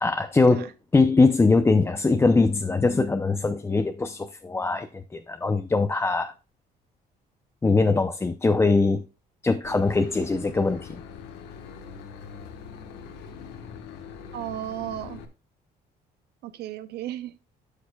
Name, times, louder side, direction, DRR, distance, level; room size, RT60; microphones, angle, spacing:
voice 1, 0.0-4.9 5.1-6.3 7.6-9.0 9.4-11.0, left 3 dB, 15° left, 0.5 m, -22 dB
Boat Water vehicle / Engine, 9.6-15.3, left 6 dB, 90° left, 1.2 m, -42 dB
voice 2, 14.3-15.2 16.4-17.5, right 12 dB, 75° right, 0.6 m, -34 dB
12.0 x 6.5 x 2.2 m
cardioid pair, 110°, 17 cm